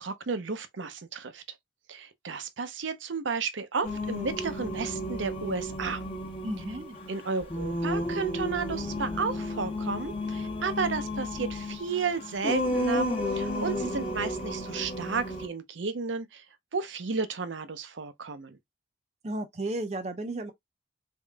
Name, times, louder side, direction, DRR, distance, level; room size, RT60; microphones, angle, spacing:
voice 1, 0.0-1.4 1.9-6.0 7.1-16.4 16.7-18.6, right 5 dB, 85° right, 0.7 m, -33 dB
Singing, 3.8-15.5, left 1 dB, 30° left, 0.9 m, -33 dB
voice 2, 6.4-7.0 13.8-14.2 19.2-20.5, right 2 dB, 35° right, 0.5 m, -34 dB
3.7 x 3.6 x 2.2 m
head